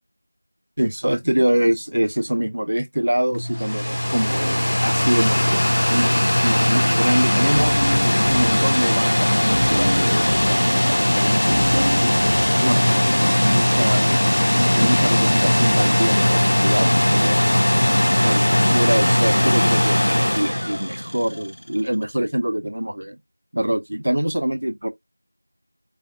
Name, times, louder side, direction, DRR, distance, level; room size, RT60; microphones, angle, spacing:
voice 1, 0.8-7.8 8.2-11.9 12.6-14.2 14.7-17.5 18.2-23.2 23.5-24.9, right 1 dB, 40° right, 0.5 m, -24 dB
sound 1, 3.3-21.5, left 1 dB, 45° left, 0.4 m, -19 dB
sound 2, 7.5-8.7 9.5-10.6 11.5-12.6 13.5-14.0 14.8-15.4, equal, 90° right, 1.0 m, -28 dB
5.0 x 2.6 x 2.4 m
figure-of-eight pair, 180°, 0 cm